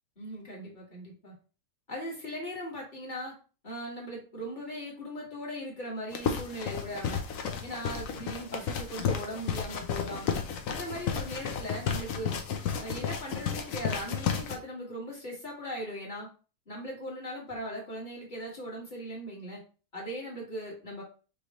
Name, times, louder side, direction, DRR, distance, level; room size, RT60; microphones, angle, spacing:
voice 1, 0.2-1.3 1.9-3.3 3.6-7.2 7.6-10.3 10.7-12.4 12.8-16.3 16.7-19.6 19.9-21.0, equal, 25° left, -3 dB, 1.6 m, -39 dB
sound 1, 6.1-14.6, left 7 dB, 85° left, 0.7 m, -33 dB
5.3 x 3.4 x 2.9 m, 0.36 s
omnidirectional pair, 2.3 m